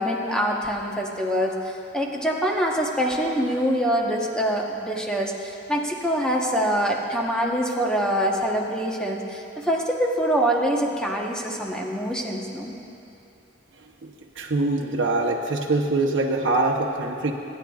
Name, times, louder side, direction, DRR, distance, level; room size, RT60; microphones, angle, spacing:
voice 1, 0.0-12.7, equal, 5° left, -1 dB, 1.0 m, -25 dB
voice 2, 14.4-17.3, right 2 dB, 75° right, -1 dB, 0.8 m, -23 dB
25.5 x 10.0 x 2.4 m, 2.7 s
head